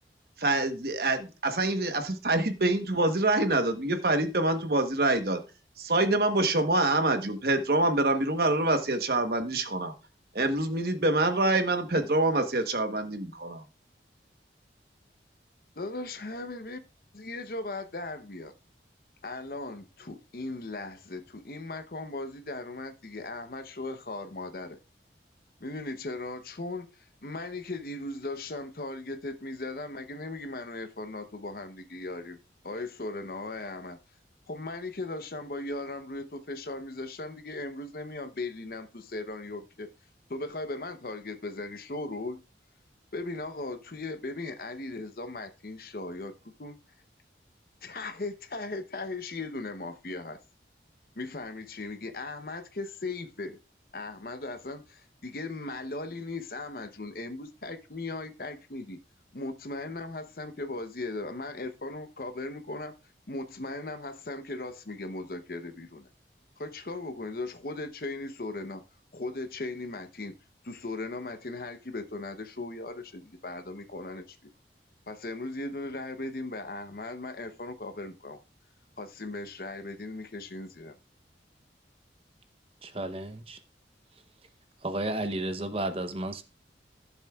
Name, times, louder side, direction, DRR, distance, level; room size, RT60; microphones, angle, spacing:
voice 1, 0.4-5.4 5.8-9.9 10.3-13.6, right 2 dB, 55° right, 1.1 m, -26 dB
voice 2, 15.8-16.8 17.1-18.5 19.2-24.8 25.6-26.9 27.2-32.4 32.6-34.0 34.5-39.9 40.3-42.4 43.1-46.3 46.6-46.8 47.8-50.4 51.2-53.6 53.9-59.0 59.3-62.9 63.3-66.1 66.6-68.8 69.1-70.3 70.6-74.5 75.1-78.4 79.0-81.0, left 2 dB, 55° left, 0.8 m, -38 dB
voice 3, 82.8-83.6 84.8-86.4, right 1 dB, 30° right, 0.8 m, -32 dB
15.5 x 7.2 x 2.4 m
head